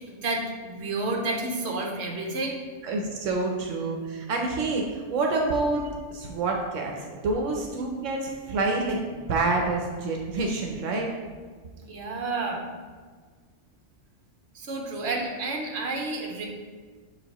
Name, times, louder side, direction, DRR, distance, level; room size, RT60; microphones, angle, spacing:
voice 1, 0.2-2.6 11.8-12.6 14.5-16.5, right 2 dB, 65° right, 1 dB, 1.1 m, -30 dB
voice 2, 2.8-5.8 6.1-11.1, right 3 dB, 85° right, 1 dB, 1.1 m, -27 dB
7.1 x 4.9 x 2.9 m, 1.5 s
omnidirectional pair, 1.3 m